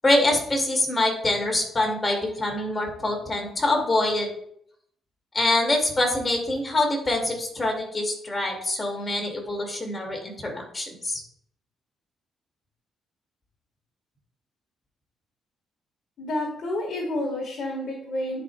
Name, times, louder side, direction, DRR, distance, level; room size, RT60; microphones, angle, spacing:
voice 1, 0.0-4.3 5.3-11.2, left 2 dB, 25° left, 0 dB, 2.4 m, -25 dB
voice 2, 16.2-18.4, left 1 dB, 55° left, -1 dB, 1.6 m, -29 dB
10.5 x 4.9 x 2.3 m, 0.67 s
cardioid pair, 90°, 0 cm